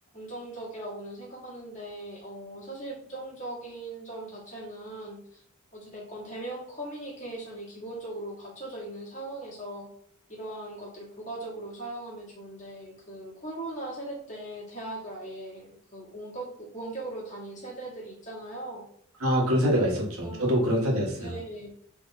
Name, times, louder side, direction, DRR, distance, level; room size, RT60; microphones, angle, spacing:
voice 1, 0.1-5.4 5.7-9.9 10.3-18.8 19.6-19.8 20.2-20.5 21.2-21.7, right 1 dB, 35° left, -5 dB, 2.0 m, -39 dB
voice 2, 19.2-21.3, equal, 70° right, -1 dB, 1.3 m, -25 dB
4.0 x 3.2 x 3.9 m, 0.65 s
head